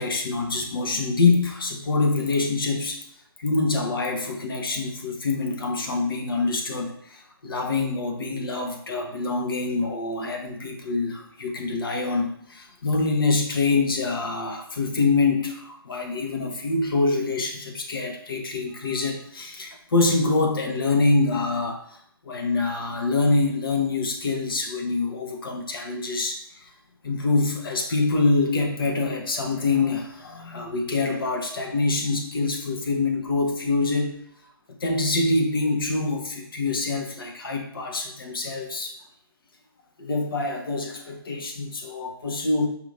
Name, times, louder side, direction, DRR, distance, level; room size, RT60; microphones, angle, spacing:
voice 1, 0.0-3.0 3.4-21.8 22.2-26.7 27.0-34.1 34.8-38.9 40.0-42.7, left 3 dB, 65° left, 2 dB, 1.0 m, -25 dB
4.8 x 2.6 x 3.4 m, 0.67 s
figure-of-eight pair, 130°, 13 cm